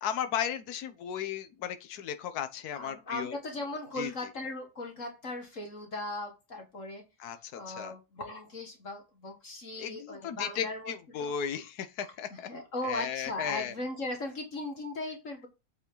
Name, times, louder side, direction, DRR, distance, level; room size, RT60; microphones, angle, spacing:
voice 1, 0.0-3.4 4.0-4.1 7.2-7.9 9.8-12.5 12.8-13.7, left 8 dB, 75° left, 1.4 m, -35 dB
voice 2, 2.7-7.0 7.3-11.5 12.1-15.5, left 2 dB, 50° left, 2.2 m, -38 dB
8.4 x 5.9 x 3.9 m
omnidirectional pair, 1.7 m